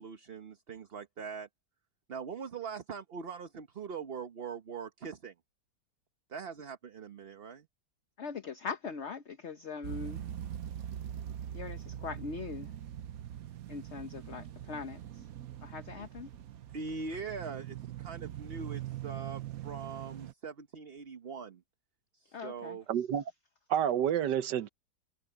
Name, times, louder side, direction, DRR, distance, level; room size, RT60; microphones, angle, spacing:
voice 1, 0.0-1.5 2.1-5.3 6.3-7.7 16.7-21.6 22.1-22.8, right 5 dB, 40° right, 1.1 m, -42 dB
voice 2, 8.2-10.3 11.5-12.7 13.7-15.3 15.6-16.3 22.3-22.8, left 5 dB, 45° left, 1.1 m, -41 dB
sound 1, 9.8-20.3, right 11 dB, 60° right, 1.1 m, -42 dB
voice 3, 22.9-23.2 23.7-24.7, right 9 dB, 80° right, 1.6 m, -29 dB
omnidirectional pair, 1.8 m